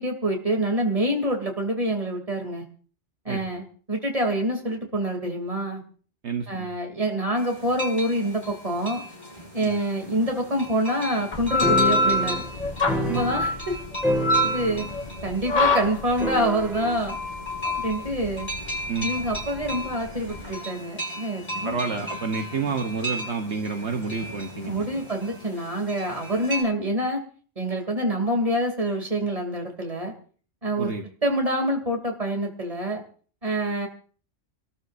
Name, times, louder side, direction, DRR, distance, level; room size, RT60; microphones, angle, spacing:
voice 1, 0.0-2.6 3.2-5.8 6.5-9.0 9.5-12.5 13.1-13.8 14.4-14.9 15.2-17.2 17.6-18.5 19.0-21.8 24.7-27.2 27.6-30.1 30.6-30.9 31.2-33.0 33.4-33.9, right 1 dB, 30° right, 2 dB, 3.0 m, -26 dB
voice 2, 3.3-3.6 6.2-6.7 9.6-9.7 13.0-13.2 18.9-19.1 21.6-25.0 30.8-31.0, right 5 dB, 65° right, 5 dB, 1.4 m, -29 dB
sound 1, 7.4-26.6, equal, 20° left, 6.5 m, -36 dB
sound 2, 11.3-20.5, left 2 dB, 40° left, 1.3 m, -26 dB
sound 3, 11.6-13.7 14.0-15.0 15.3-15.4 16.2-17.0, equal, ahead, 1.9 m, -28 dB
29.5 x 13.0 x 2.6 m, 0.42 s
omnidirectional pair, 1.2 m